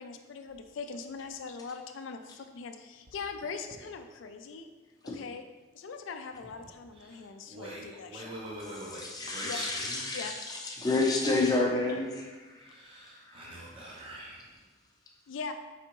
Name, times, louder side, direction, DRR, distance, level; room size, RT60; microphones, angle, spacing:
voice 1, 0.0-4.7 5.0-5.4 5.7-8.4 9.4-9.6 10.1-10.3 15.3-15.5, left 5 dB, 75° left, 8 dB, 0.4 m, -41 dB
voice 2, 6.6-10.0 12.6-14.6, right 1 dB, 25° right, -3 dB, 0.5 m, -44 dB
voice 3, 9.0-10.3 10.6-12.7 13.3-13.4, left 2 dB, 20° left, 0 dB, 0.6 m, -30 dB
4.8 x 3.4 x 3.0 m, 1.2 s
head